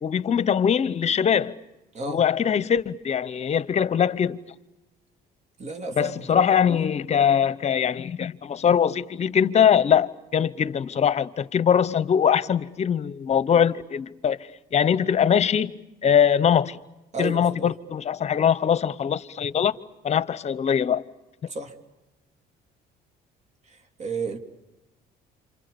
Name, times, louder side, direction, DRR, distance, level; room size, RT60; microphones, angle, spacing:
voice 1, 0.0-1.6 2.1-4.4 6.0-14.4 14.7-15.7 16.0-16.8 17.2-19.8 20.0-21.0, left 8 dB, 40° left, 1.0 m, -22 dB
voice 2, 5.6-6.8 17.1-17.7 21.5-21.7 23.7-24.4, right 3 dB, 40° right, 3.3 m, -33 dB
28.5 x 27.5 x 7.0 m
cardioid pair, 110°, 17 cm